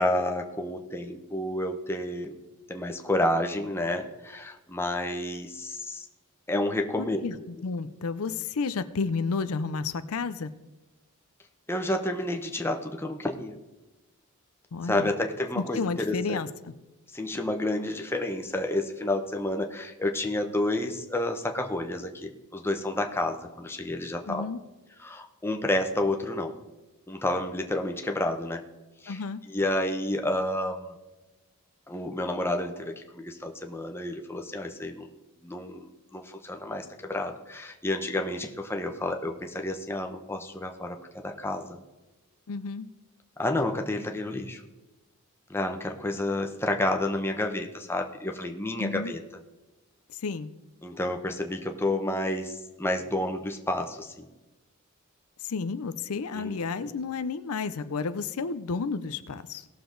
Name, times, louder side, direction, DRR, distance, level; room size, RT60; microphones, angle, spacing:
voice 1, 0.0-2.3 2.7-6.1 6.5-7.2 11.7-13.6 14.8-16.4 17.1-24.4 25.0-26.5 27.1-28.6 29.0-29.2 29.5-30.9 31.9-35.1 35.4-41.8 43.4-44.6 45.5-49.2 50.8-54.3 56.3-56.9, left 1 dB, 10° left, 4 dB, 0.9 m, -30 dB
voice 2, 7.0-10.5 14.7-15.1 15.6-16.7 24.3-24.6 29.1-29.4 42.5-42.9 48.8-49.1 50.1-50.5 55.4-59.7, left 4 dB, 80° left, 12 dB, 0.5 m, -31 dB
18.0 x 6.8 x 3.9 m, 1.1 s
head